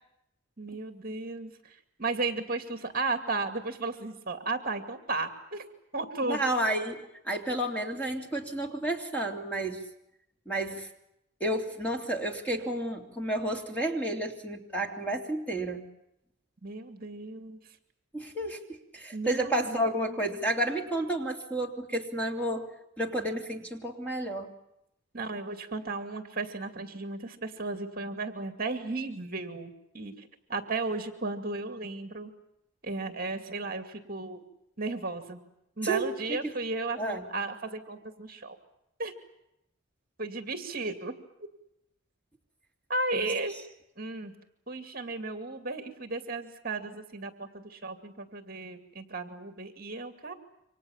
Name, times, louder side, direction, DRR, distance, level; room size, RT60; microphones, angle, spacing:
voice 1, 0.6-5.7 5.9-6.4 16.6-17.6 19.1-20.2 25.1-32.3 32.8-34.4 34.8-35.4 35.8-38.6 39.0-39.1 40.2-41.1 42.9-43.6 44.0-44.3 44.7-50.3, right 3 dB, 45° right, 7 dB, 2.5 m, -34 dB
voice 2, 6.2-9.8 10.5-10.9 11.4-15.9 18.1-22.7 23.0-24.5 35.8-36.1 37.0-37.2 43.1-43.3, right 1 dB, 5° left, 2 dB, 3.1 m, -31 dB
28.5 x 25.5 x 7.3 m, 0.82 s
head